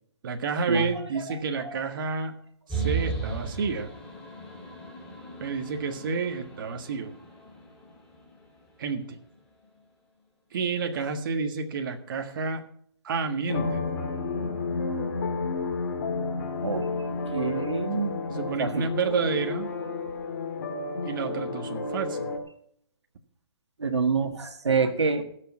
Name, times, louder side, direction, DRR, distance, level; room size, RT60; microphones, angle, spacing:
voice 1, 0.2-2.4 2.7-3.9 5.4-7.1 8.8-9.2 10.5-12.6 13.0-13.8 18.3-19.7 21.0-22.3, right 5 dB, 50° right, 5 dB, 1.5 m, -30 dB
sound 1, 2.7-8.2, right 4 dB, 5° left, 3.1 m, -35 dB
sound 2, 13.5-22.4, left 4 dB, 45° left, 2.2 m, -31 dB
voice 2, 17.3-18.1 18.6-18.9 23.8-25.2, right 4 dB, 85° right, 7 dB, 1.7 m, -26 dB
16.5 x 6.6 x 6.0 m, 0.67 s
hypercardioid pair, 145°, 14 cm